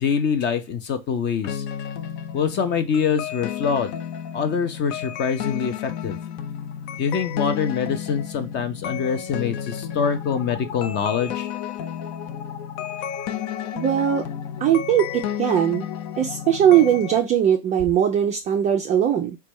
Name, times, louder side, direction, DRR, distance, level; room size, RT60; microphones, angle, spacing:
voice 1, 0.0-1.6 2.3-3.9 4.3-6.2 7.0-11.5, left 6 dB, 30° left, 0.6 m, -24 dB
sound 1, 1.5-17.2, left 9 dB, 65° left, 0.6 m, -32 dB
voice 2, 13.7-14.3 14.6-15.9 16.2-19.4, right 10 dB, 20° right, 0.3 m, -20 dB
4.1 x 2.3 x 4.6 m
supercardioid pair, 130°, 37 cm